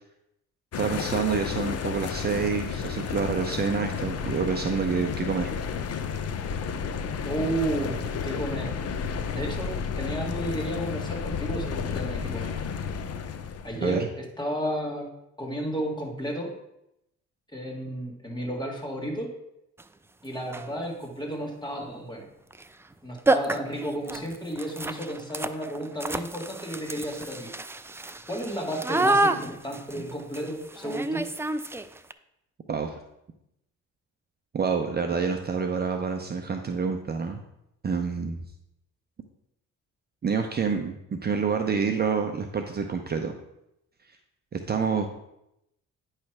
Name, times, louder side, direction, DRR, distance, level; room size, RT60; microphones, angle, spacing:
sound 1, 0.7-13.8, left 6 dB, 55° left, 0.7 m, -32 dB
voice 1, 0.8-5.5 13.8-14.1 32.7-32.9 34.5-37.4 37.8-38.4 40.2-43.3 44.5-45.1, right 5 dB, 35° right, 4 dB, 0.7 m, -27 dB
voice 2, 7.2-8.7 9.3-12.5 13.6-15.1 15.4-16.5 17.5-19.3 20.2-22.3 23.0-27.5 28.3-31.3, right 1 dB, 15° left, 0 dB, 2.1 m, -32 dB
sound 2, 19.8-19.9 20.4-20.8 22.5-22.7 22.9-23.0 23.3-32.1, right 2 dB, 10° right, 0.4 m, -29 dB
9.5 x 3.3 x 6.0 m, 0.83 s
cardioid pair, 90°, 30 cm